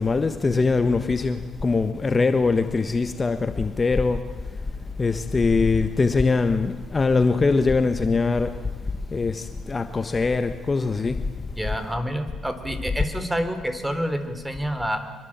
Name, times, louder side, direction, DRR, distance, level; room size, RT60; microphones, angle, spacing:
voice 1, 0.0-4.2 5.0-8.6 9.1-11.2, left 4 dB, 30° left, 1.4 m, -22 dB
voice 2, 11.6-15.0, equal, 10° right, 3.7 m, -28 dB
25.0 x 23.5 x 8.9 m
cardioid pair, 90°, 0 cm